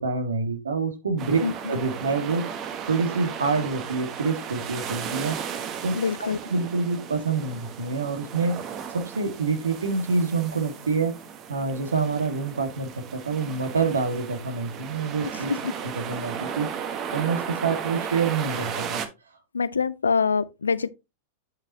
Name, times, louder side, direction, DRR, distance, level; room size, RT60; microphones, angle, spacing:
voice 1, 0.0-1.4 1.7-2.4 2.9-5.4 5.8-6.0 6.5-8.5 8.9-11.1 11.5-15.5 15.8-16.7 17.1-19.0, right 4 dB, 80° right, 1.7 m, -26 dB
sound 1, 1.2-19.1, right 7 dB, 35° right, 1.2 m, -35 dB
voice 2, 6.0-6.4 15.5-15.7 19.5-20.9, left 5 dB, 80° left, 0.5 m, -24 dB
8.7 x 6.1 x 2.8 m
figure-of-eight pair, 95°, 0 cm